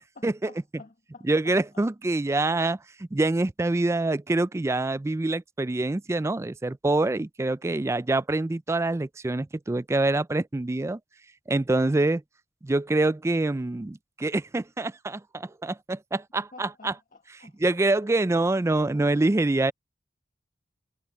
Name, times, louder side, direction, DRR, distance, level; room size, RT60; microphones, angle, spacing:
voice 1, 0.0-1.6 16.5-17.8, left 3 dB, 50° left, 1.5 m, -51 dB
voice 2, 1.3-11.0 11.5-12.2 12.6-16.9 17.6-19.7, right 2 dB, 15° right, 0.3 m, -25 dB
head